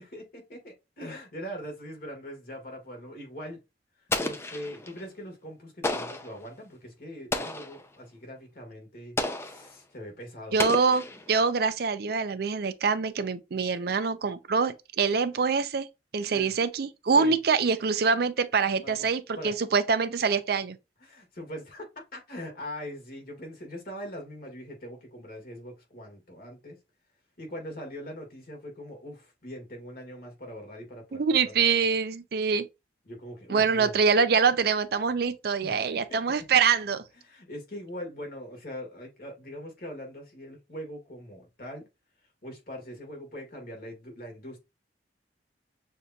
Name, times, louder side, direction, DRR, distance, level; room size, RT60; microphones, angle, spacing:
voice 1, 0.0-3.6 4.2-10.6 16.3-16.5 17.2-17.4 18.8-19.0 19.3-19.5 21.0-26.8 27.4-31.6 33.0-34.0 35.6-36.4 37.2-41.9 42.4-44.6, equal, 55° left, 1.6 m, -42 dB
Explosion, 4.1-5.0 5.8-6.4 7.3-7.8 9.2-9.7 10.6-11.5, left 2 dB, 15° left, 0.4 m, -32 dB
voice 2, 10.5-15.9 16.1-20.8 31.1-32.7 33.5-37.0, right 5 dB, 60° right, 0.5 m, -25 dB
6.5 x 2.7 x 2.3 m
head